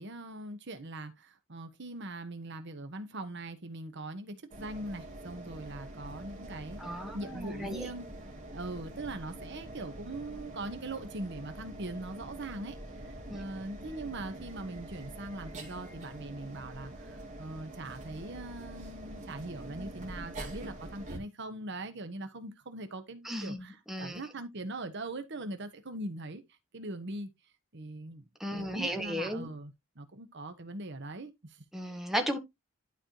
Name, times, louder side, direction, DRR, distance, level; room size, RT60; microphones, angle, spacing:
voice 1, 0.0-8.1 8.5-26.4 26.7-27.3 27.7-28.3 28.5-31.6, right 2 dB, 55° right, 1.1 m, -41 dB
sound 1, 4.5-21.2, right 1 dB, 35° right, 2.5 m, -45 dB
voice 2, 6.8-7.9 13.3-13.4 23.2-24.2 28.4-29.5 31.7-32.4, equal, ahead, 1.6 m, -35 dB
11.5 x 4.3 x 2.9 m
head